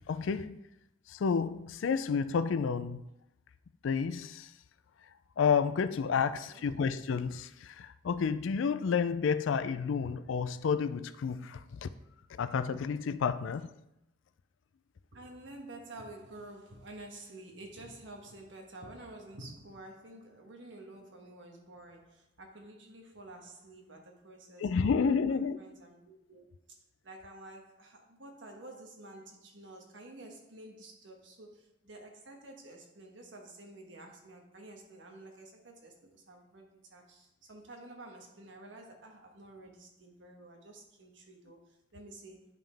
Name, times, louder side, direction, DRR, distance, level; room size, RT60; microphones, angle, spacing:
voice 1, 0.1-0.6 1.1-3.0 3.8-4.5 5.4-11.9 12.3-13.7 24.6-25.6, left 6 dB, 85° left, 0.4 m, -30 dB
voice 2, 6.2-6.6 15.1-26.5 27.0-42.5, right 2 dB, 70° right, 1.4 m, -50 dB
9.1 x 5.5 x 3.4 m
head